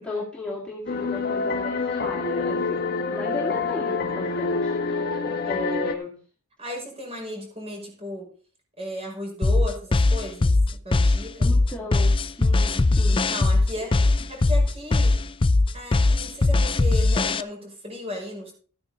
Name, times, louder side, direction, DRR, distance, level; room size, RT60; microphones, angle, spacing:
voice 1, 0.0-2.8 3.1-6.2 11.4-13.3 13.8-14.0, left 2 dB, 5° left, -5 dB, 2.7 m, -35 dB
sound 1, 0.9-5.9, left 4 dB, 45° left, 1.2 m, -27 dB
voice 2, 6.6-8.3 8.8-11.6 13.1-14.0 14.3-15.2 15.7-18.5, left 1 dB, 25° right, 1 dB, 5.4 m, -35 dB
sound 2, 9.4-17.4, left 2 dB, 25° left, 0.4 m, -20 dB
13.5 x 9.6 x 4.1 m, 0.40 s
head